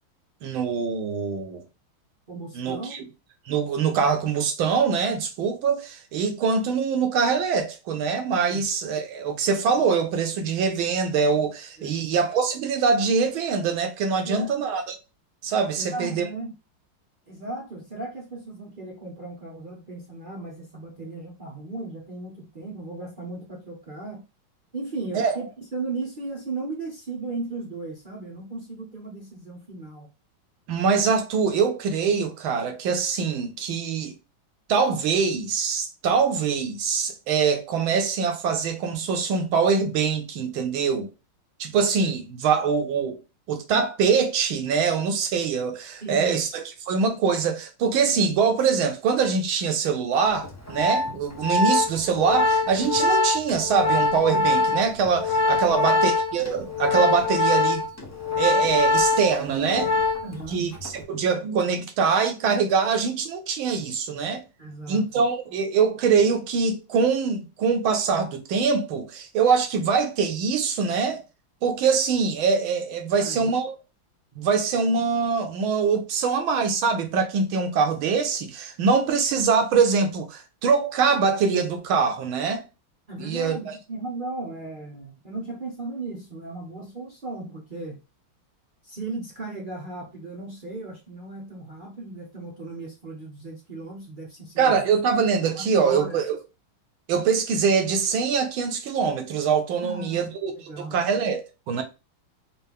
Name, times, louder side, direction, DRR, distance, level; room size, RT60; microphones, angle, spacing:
voice 1, 0.4-1.6 2.5-3.0 3.5-15.0 15.4-16.2 25.1-25.4 30.7-34.1 34.7-41.1 41.6-43.2 43.5-57.8 58.4-60.0 60.5-64.4 64.9-71.2 71.6-73.7 74.4-82.6 83.2-83.7 94.6-96.4 97.1-100.5 100.8-101.8, right 5 dB, 75° right, 1.6 m, -23 dB
voice 2, 2.3-2.9 8.5-8.6 11.8-12.2 14.2-14.6 15.8-16.5 17.3-24.2 24.7-30.1 46.0-46.4 55.6-56.1 60.2-60.6 64.6-65.2 73.1-73.5 74.4-74.5 83.1-88.0 88.8-94.9 95.5-96.2 99.8-101.0, right 2 dB, 40° right, 0.7 m, -36 dB
Organ, 50.4-60.4 60.7-61.0, left 2 dB, 20° left, 0.5 m, -23 dB
4.4 x 2.6 x 3.5 m
omnidirectional pair, 2.2 m